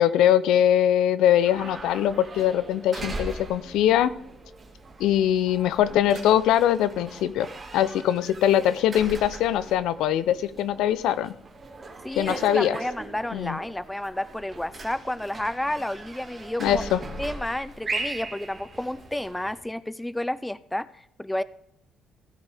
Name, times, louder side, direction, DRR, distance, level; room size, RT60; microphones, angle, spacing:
voice 1, 0.0-4.1 5.0-7.5 7.7-11.3 12.2-12.8 13.3-13.6 16.6-17.0, left 11 dB, 90° left, 15 dB, 0.6 m, -22 dB
sound 1, 1.4-19.6, right 2 dB, 25° right, 2.0 m, -39 dB
voice 2, 12.0-16.8 17.2-21.4, left 1 dB, 5° left, 17 dB, 0.4 m, -31 dB
16.0 x 8.3 x 3.5 m, 0.79 s
cardioid pair, 130°, 0 cm